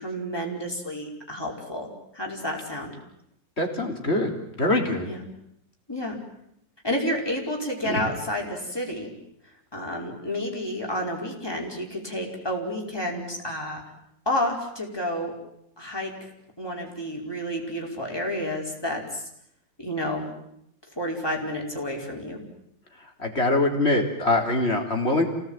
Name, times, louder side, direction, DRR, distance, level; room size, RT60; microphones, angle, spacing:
voice 1, 0.0-2.9 5.0-5.3 5.9-6.2 6.8-9.1 9.7-13.8 14.3-15.3 15.8-16.3 16.6-19.2 19.8-20.3 20.9-22.4, equal, 10° left, -1 dB, 5.2 m, -30 dB
voice 2, 3.6-4.3 4.6-5.1 7.8-8.0 23.2-25.3, left 2 dB, 30° left, 2 dB, 3.8 m, -23 dB
28.5 x 18.5 x 9.0 m, 0.76 s
omnidirectional pair, 2.2 m